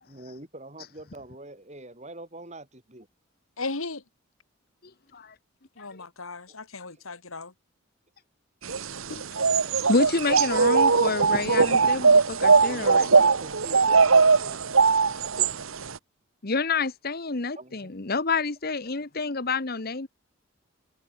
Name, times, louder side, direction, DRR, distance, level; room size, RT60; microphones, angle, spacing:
voice 1, 0.1-3.1 6.9-7.0 12.4-14.8 17.6-17.9, right 2 dB, 30° right, 5.5 m, -44 dB
voice 2, 3.6-4.0 5.8-7.5, left 3 dB, 75° left, 2.7 m, -36 dB
sound 1, 8.7-16.0, right 4 dB, 70° right, 1.2 m, -20 dB
voice 3, 9.9-13.1 16.4-20.1, left 3 dB, 45° left, 1.2 m, -28 dB
head